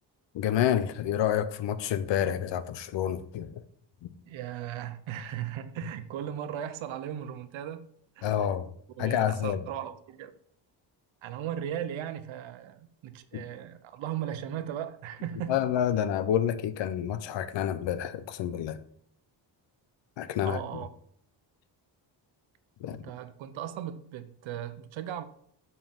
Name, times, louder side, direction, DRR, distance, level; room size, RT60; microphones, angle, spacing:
voice 1, 0.3-3.6 4.0-4.1 8.2-8.7 9.0-9.6 13.3-13.4 15.5-18.8 20.2-20.6 22.8-23.0, left 10 dB, 70° left, 0.8 m, -28 dB
voice 2, 4.3-7.9 8.2-8.6 9.0-10.3 11.2-15.7 20.4-20.9 22.9-25.3, right 10 dB, 90° right, 0.9 m, -37 dB
7.4 x 5.5 x 5.6 m
cardioid pair, 175°, 45 cm